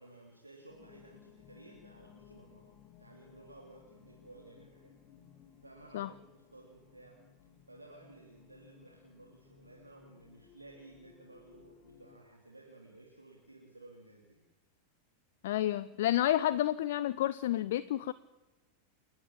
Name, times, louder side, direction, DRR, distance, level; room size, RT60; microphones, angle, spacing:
voice 1, 0.0-2.7 3.0-4.9 5.6-7.2 7.7-14.4, right 2 dB, 85° right, -1 dB, 3.4 m, -55 dB
sound 1, 0.7-12.2, left 8 dB, 30° left, 3.0 m, -60 dB
voice 2, 15.4-18.1, left 13 dB, 55° left, 15 dB, 0.7 m, -30 dB
30.0 x 10.5 x 8.9 m, 1.1 s
figure-of-eight pair, 90°, 0 cm